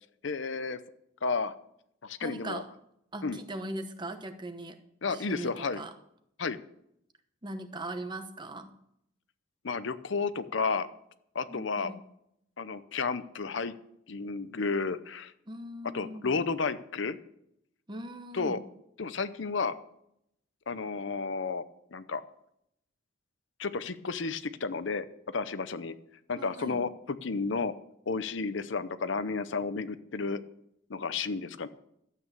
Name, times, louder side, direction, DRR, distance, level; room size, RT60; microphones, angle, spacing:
voice 1, 0.2-0.8 1.2-1.5 2.0-2.6 3.2-3.4 5.0-5.8 6.4-6.6 9.6-10.9 11.3-11.9 12.6-13.7 14.1-15.3 15.9-17.2 18.3-18.6 19.0-19.7 20.7-22.2 23.6-25.9 26.3-27.7 28.1-30.4 30.9-31.7, left 4 dB, 65° left, 13 dB, 0.7 m, -32 dB
voice 2, 2.2-2.7 3.1-4.8 5.1-5.9 7.4-8.7 11.5-12.0 15.5-16.4 17.9-18.6 26.3-26.8, right 1 dB, 20° right, 9 dB, 1.0 m, -40 dB
12.5 x 8.6 x 6.8 m, 0.76 s
head